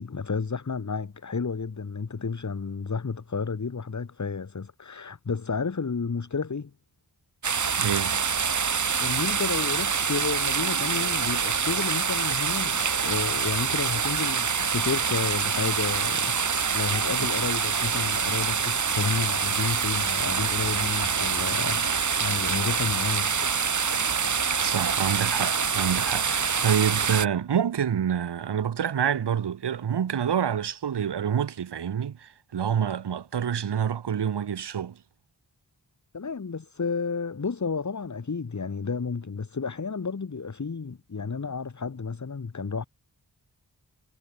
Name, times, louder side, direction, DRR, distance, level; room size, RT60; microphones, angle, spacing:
voice 1, 0.0-6.7 9.0-23.6 36.1-42.8, left 5 dB, 45° left, 1.7 m, -31 dB
sound 1, 7.4-27.3, right 6 dB, 45° right, 1.0 m, -26 dB
voice 2, 7.8-8.2 24.6-35.0, right 8 dB, 80° right, 1.1 m, -27 dB
wide cardioid pair, 70°, 40 cm